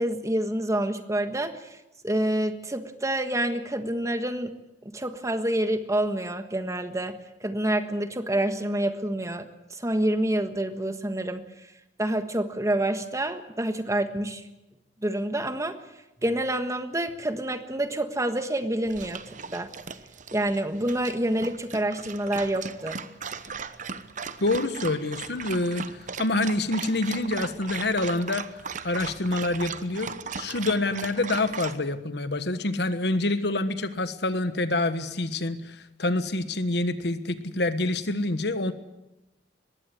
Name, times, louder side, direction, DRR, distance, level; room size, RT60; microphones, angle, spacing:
voice 1, 0.0-1.6 2.0-4.5 4.9-11.4 12.0-14.4 15.0-15.8 16.2-19.2 19.5-19.7 20.3-23.0, right 1 dB, 20° right, 9 dB, 1.4 m, -27 dB
Dog, 18.9-31.8, right 5 dB, 45° right, 1.1 m, -38 dB
voice 2, 24.4-28.5 28.8-38.7, left 2 dB, 70° left, 11 dB, 1.4 m, -27 dB
21.0 x 16.5 x 9.7 m, 0.97 s
head